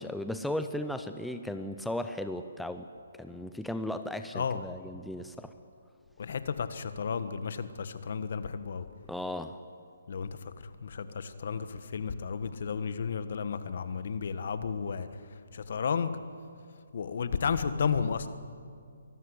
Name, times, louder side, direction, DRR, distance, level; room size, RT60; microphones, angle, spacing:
voice 1, 0.0-2.9 3.2-5.5 9.1-9.6, left 1 dB, ahead, 8 dB, 0.6 m, -36 dB
voice 2, 6.2-8.9 10.1-16.1 16.9-18.3, left 6 dB, 55° left, 11 dB, 1.4 m, -33 dB
24.0 x 13.5 x 9.9 m, 2.3 s
hypercardioid pair, 155°, 0 cm